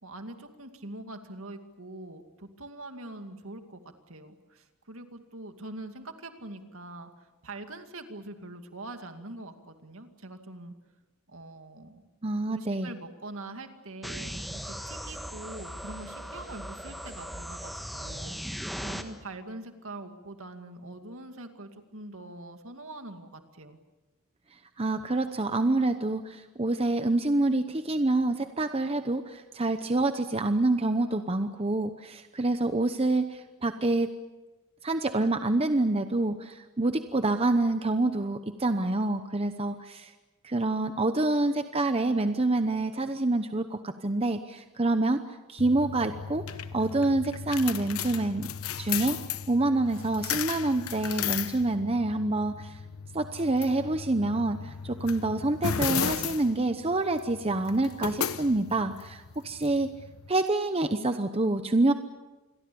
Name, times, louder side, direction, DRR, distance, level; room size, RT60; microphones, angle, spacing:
voice 1, 0.0-3.8 4.1-10.7 11.3-12.1 12.5-23.8, right 2 dB, 65° right, 6 dB, 2.3 m, -43 dB
voice 2, 12.2-12.9 24.8-34.1 34.8-40.1 40.4-45.2 45.5-46.4 46.7-48.5 48.8-49.2 49.5-52.8 53.1-59.9 60.3-61.9, right 2 dB, 25° right, 8 dB, 0.8 m, -27 dB
sound 1, 14.0-19.0, equal, ahead, 1.5 m, -38 dB
sound 2, 45.6-60.3, left 7 dB, 70° left, 1.0 m, -35 dB
28.0 x 22.5 x 7.0 m, 1.2 s
head